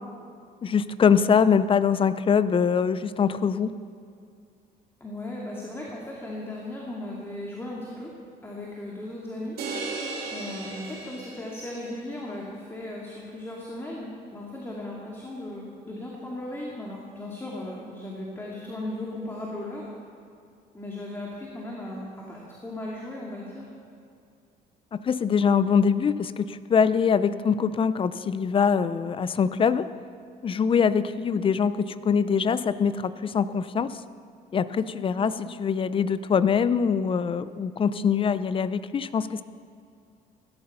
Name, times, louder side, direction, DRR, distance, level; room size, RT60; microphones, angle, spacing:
voice 1, 0.6-3.8 24.9-29.9 30.4-31.8 32.0-34.0 34.5-39.4, left 6 dB, 30° left, 15 dB, 0.6 m, -23 dB
voice 2, 5.0-8.1 8.4-9.6 10.3-19.9 20.7-23.7 35.1-35.3, left 1 dB, 15° left, -3 dB, 2.3 m, -37 dB
sound 1, 9.6-11.9, right 3 dB, 65° right, 3.4 m, -35 dB
16.5 x 13.0 x 5.6 m, 2.4 s
cardioid pair, 110°, 17 cm